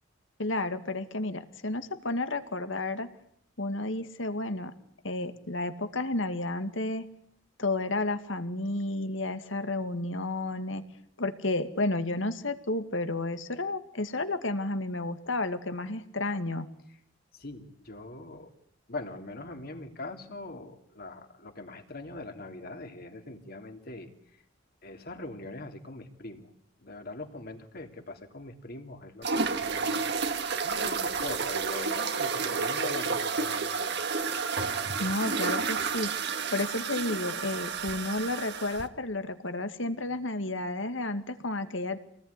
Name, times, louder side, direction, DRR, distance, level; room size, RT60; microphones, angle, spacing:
voice 1, 0.4-3.1 3.6-4.7 5.0-7.1 7.6-10.8 11.2-16.7 35.0-36.1 36.5-42.0, left 2 dB, 70° left, 9 dB, 2.3 m, -31 dB
voice 2, 17.3-18.5 18.9-24.4 24.8-26.5 26.8-30.2 30.6-34.0, left 2 dB, 50° left, 5 dB, 3.3 m, -42 dB
sound 1, 29.2-38.8, right 5 dB, 60° right, 1.9 m, -31 dB
28.0 x 19.5 x 9.9 m, 0.68 s
head